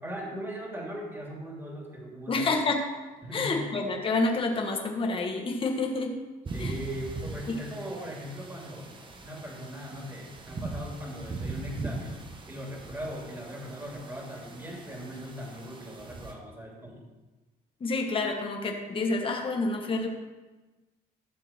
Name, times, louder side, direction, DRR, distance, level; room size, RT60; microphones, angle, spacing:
voice 1, 0.0-2.5 3.2-3.6 6.5-8.9 9.2-12.2 12.5-17.1, equal, 15° right, -2 dB, 2.8 m, -39 dB
voice 2, 2.3-2.8 3.3-6.2 6.6-6.8 7.5-7.6 17.8-20.1, left 3 dB, 30° left, 1 dB, 1.5 m, -28 dB
sound 1, 6.5-16.3, right 3 dB, 30° right, 1.3 m, -40 dB
12.5 x 6.6 x 4.4 m, 1.2 s
cardioid pair, 110°, 17 cm